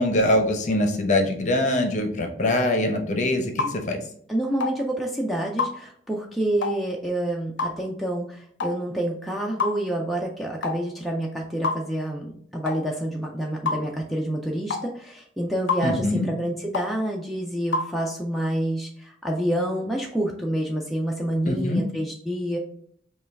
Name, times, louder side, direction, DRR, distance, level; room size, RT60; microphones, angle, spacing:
voice 1, 0.0-4.0 15.8-16.3 21.5-21.8, left 1 dB, 40° left, 4 dB, 0.7 m, -23 dB
sound 1, 3.6-3.8 4.6-4.8 5.6-5.8 6.6-6.8 7.6-7.8 8.6-8.8 9.6-9.8 10.6-10.8 11.6-11.8 12.7-12.8 13.7-13.8 14.7-14.9 15.7-15.9 16.7-16.9 17.7-17.9, left 4 dB, 80° left, 0.5 m, -26 dB
voice 2, 4.3-22.6, right 1 dB, ahead, -1 dB, 0.4 m, -28 dB
5.4 x 2.3 x 3.4 m, 0.65 s
head